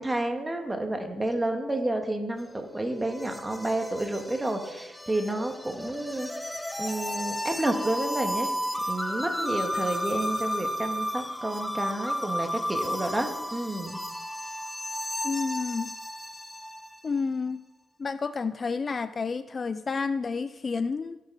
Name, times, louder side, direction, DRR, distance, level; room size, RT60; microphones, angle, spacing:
voice 1, 0.0-6.3 6.8-8.5 8.9-14.0, right 1 dB, 15° right, 4 dB, 1.9 m, -30 dB
sound 1, 2.4-17.0, equal, 5° left, 0.7 m, -33 dB
voice 2, 15.2-15.9 17.0-17.6 18.0-21.2, left 4 dB, 35° left, 13 dB, 0.4 m, -30 dB
16.5 x 9.0 x 4.2 m, 1.1 s
cardioid pair, 90°, 0 cm